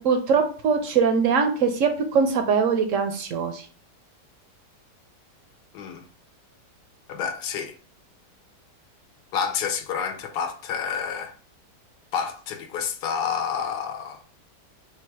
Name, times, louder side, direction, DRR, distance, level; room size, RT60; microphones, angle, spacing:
voice 1, 0.0-3.7, right 5 dB, 70° right, 0.7 m, -22 dB
voice 2, 5.7-6.0 7.1-7.7 9.3-11.3 12.1-14.2, left 7 dB, 75° left, 1.2 m, -29 dB
4.0 x 2.3 x 4.5 m
omnidirectional pair, 1.8 m